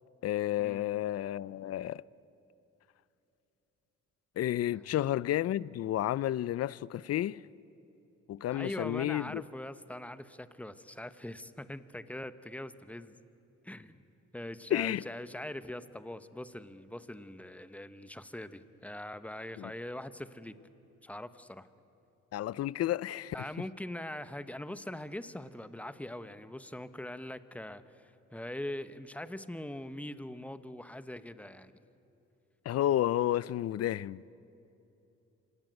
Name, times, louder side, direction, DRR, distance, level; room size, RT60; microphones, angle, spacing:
voice 1, 0.2-2.0 4.4-7.4 8.3-9.4 14.7-15.0 19.6-19.7 22.3-23.4 32.7-34.3, left 13 dB, 55° left, 0.5 m, -31 dB
voice 2, 8.5-13.1 13.6-14.0 14.3-20.6 21.0-21.7 23.3-31.7, left 1 dB, 5° left, 1.0 m, -42 dB
26.5 x 18.0 x 9.2 m
cardioid pair, 90°, 30 cm